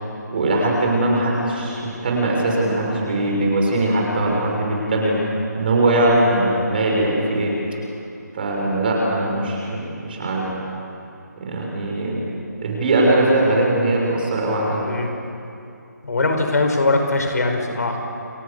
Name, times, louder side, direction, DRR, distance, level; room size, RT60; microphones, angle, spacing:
voice 1, 0.3-5.2 5.5-7.5 8.3-10.5 11.4-12.3 12.6-14.8, right 1 dB, 30° right, -1 dB, 6.3 m, -20 dB
voice 2, 16.0-18.0, left 2 dB, 60° left, 4 dB, 5.3 m, -21 dB
30.0 x 23.0 x 7.0 m, 2.7 s
figure-of-eight pair, 170°, 10 cm